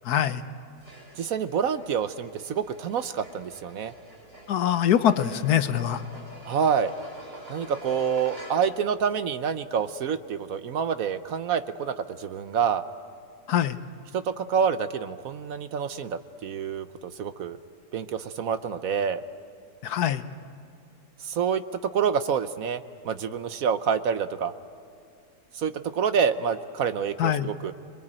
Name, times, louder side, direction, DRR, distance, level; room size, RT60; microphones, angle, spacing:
voice 1, 0.0-0.4 4.5-6.0 13.5-13.8 19.8-20.2 27.2-27.5, left 10 dB, 75° left, 12 dB, 1.4 m, -23 dB
sound 1, 0.8-8.9, equal, 85° right, 6.1 m, -46 dB
voice 2, 1.1-3.9 6.4-6.9 7.5-12.8 14.1-17.6 17.9-19.2 21.2-21.6 21.9-24.5 25.5-27.7, right 7 dB, 60° right, 11 dB, 1.1 m, -27 dB
26.5 x 22.0 x 8.8 m, 2.3 s
omnidirectional pair, 1.7 m